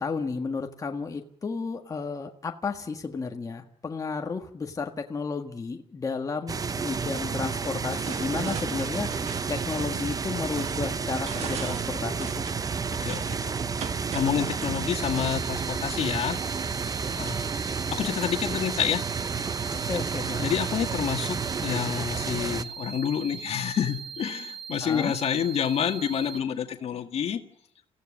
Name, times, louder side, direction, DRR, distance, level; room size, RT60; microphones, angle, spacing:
voice 1, 0.0-9.1 9.5-12.4 19.9-20.5 24.8-25.1, left 4 dB, 30° left, 4 dB, 1.7 m, -32 dB
sound 1, 6.5-22.6, right 5 dB, 35° right, 0.8 m, -31 dB
sound 2, 7.9-14.9, right 7 dB, 70° right, 1.7 m, -40 dB
voice 2, 13.0-13.5 14.1-16.4 17.1-17.4 17.9-19.0 20.4-21.4 21.6-27.4, left 8 dB, 65° left, 6 dB, 2.0 m, -28 dB
sound 3, 15.0-26.4, right 7 dB, ahead, 2.7 m, -41 dB
29.0 x 15.5 x 6.6 m, 0.78 s
cardioid pair, 100°, 11 cm